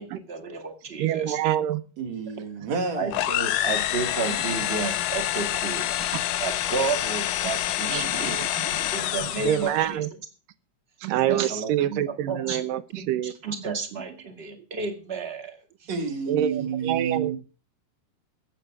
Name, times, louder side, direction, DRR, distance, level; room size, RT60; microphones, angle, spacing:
voice 1, 0.0-1.4 2.9-8.4 8.9-10.0 11.3-12.6 13.0-13.1 13.4-15.6, right 4 dB, 25° right, 1.6 m, -32 dB
voice 2, 1.0-1.8 4.2-4.4 6.1-6.2 7.8-8.9 9.2-10.1 11.0-13.3 16.3-17.3, right 11 dB, 85° right, 2.6 m, -27 dB
voice 3, 2.0-3.2 15.9-17.4, right 5 dB, 55° right, 2.9 m, -29 dB
sound 1, 3.1-9.8, left 13 dB, 70° left, 1.6 m, -27 dB
14.5 x 9.1 x 6.0 m
omnidirectional pair, 3.8 m